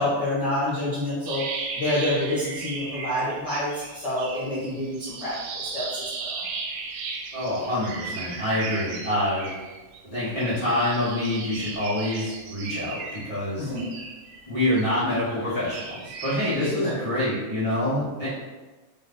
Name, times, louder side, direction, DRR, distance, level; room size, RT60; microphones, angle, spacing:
voice 1, 0.0-1.5 1.8-5.4 5.6-6.5 13.6-13.9 16.6-16.9, left 1 dB, 70° left, -9 dB, 1.0 m, -27 dB
sound 1, 1.3-3.5 3.7-10.0 10.4-14.8 15.3-16.5, right 4 dB, 85° right, 1.9 m, -36 dB
voice 2, 7.3-9.5 10.0-13.7 14.5-18.3, left 1 dB, 30° right, -13 dB, 0.6 m, -26 dB
4.9 x 2.6 x 3.8 m, 1.2 s
omnidirectional pair, 3.3 m